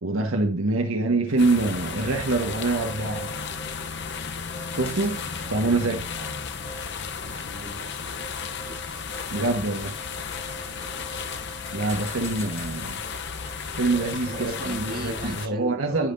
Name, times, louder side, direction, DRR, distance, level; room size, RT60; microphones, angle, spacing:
voice 1, 0.0-3.3 4.7-6.1 9.3-10.0 11.7-13.0 13.7-16.1, right 2 dB, 75° right, 1.3 m, -25 dB
sound 1, 1.3-15.0, equal, 30° left, 2.6 m, -44 dB
sound 2, 1.4-15.5, left 6 dB, 55° left, 0.7 m, -34 dB
voice 2, 5.4-5.8 6.1-6.3 7.2-9.4 10.5-11.4 14.2-16.1, right 2 dB, 45° right, 1.8 m, -39 dB
14.5 x 5.8 x 2.6 m
head